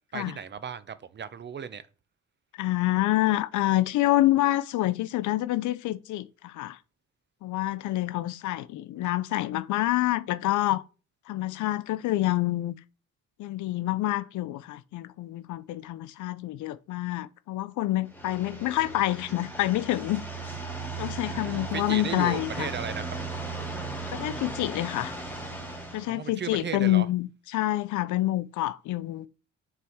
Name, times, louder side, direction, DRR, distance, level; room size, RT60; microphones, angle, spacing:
voice 1, 0.1-1.8 21.3-23.0 26.1-27.1, right 7 dB, 35° right, 0.7 m, -35 dB
voice 2, 2.5-6.8 7.4-10.8 11.3-12.7 13.4-20.2 21.0-22.7 24.1-25.1 25.9-29.3, left 15 dB, 80° left, 0.5 m, -27 dB
sound 1, 18.1-26.1, right 3 dB, 5° left, 2.5 m, -37 dB
6.7 x 4.5 x 3.6 m
cardioid pair, 90°, 30 cm